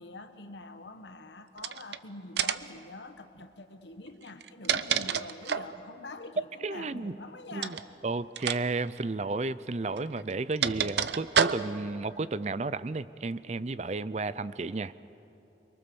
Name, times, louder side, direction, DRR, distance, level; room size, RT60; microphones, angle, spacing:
voice 1, 0.0-7.8, left 2 dB, 85° left, 8 dB, 1.3 m, -45 dB
sound 1, 1.6-2.0 2.4-2.8 4.3-5.8 7.6-7.9 8.4-8.6 8.9-9.0 10.0-11.9, right 7 dB, 75° right, 0.7 m, -29 dB
voice 2, 6.6-7.2 7.5-7.8 8.0-14.9, right 3 dB, 40° right, 16 dB, 0.5 m, -32 dB
29.5 x 23.0 x 7.0 m, 2.9 s
head